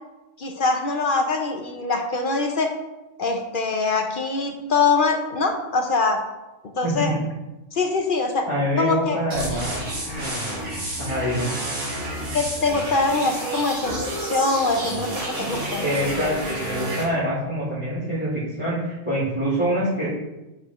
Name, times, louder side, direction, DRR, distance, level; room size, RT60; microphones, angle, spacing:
voice 1, 0.4-2.7 3.2-6.2 6.6-7.2 7.7-8.5 8.8-9.2 12.3-15.9, left 3 dB, 50° left, 4 dB, 0.7 m, -23 dB
voice 2, 6.8-7.2 8.5-9.8 11.0-11.5 15.8-20.1, equal, 25° right, -14 dB, 2.4 m, -25 dB
sound 1, 9.3-17.0, right 1 dB, 65° right, 2.0 m, -30 dB
5.2 x 4.9 x 5.3 m, 1.0 s
omnidirectional pair, 1.4 m